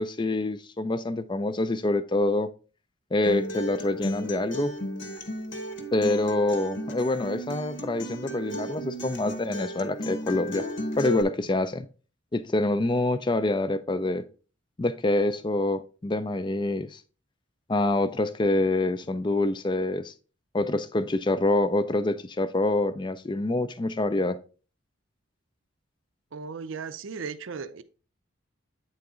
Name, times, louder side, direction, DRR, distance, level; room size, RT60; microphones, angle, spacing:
voice 1, 0.0-2.5 3.1-4.7 5.9-10.6 11.0-11.9 12.3-14.2 14.8-17.0 17.7-20.1 20.5-24.4, left 2 dB, 25° left, 0.4 m, -26 dB
Acoustic guitar, 3.2-11.2, equal, 60° left, 0.9 m, -34 dB
voice 2, 26.3-27.8, right 5 dB, 75° right, 0.5 m, -36 dB
8.7 x 3.9 x 3.6 m
head